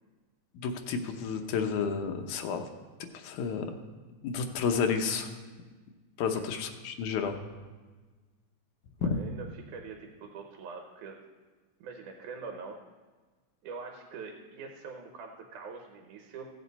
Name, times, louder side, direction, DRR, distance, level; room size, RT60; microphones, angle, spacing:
voice 1, 0.5-2.6 3.1-3.7 4.2-5.3 6.2-7.4 9.0-9.1, left 6 dB, 85° left, 5 dB, 2.3 m, -31 dB
voice 2, 9.0-11.2 11.8-12.8 13.6-16.5, right 4 dB, 85° right, 3 dB, 2.4 m, -43 dB
15.5 x 7.8 x 4.1 m, 1.3 s
omnidirectional pair, 3.4 m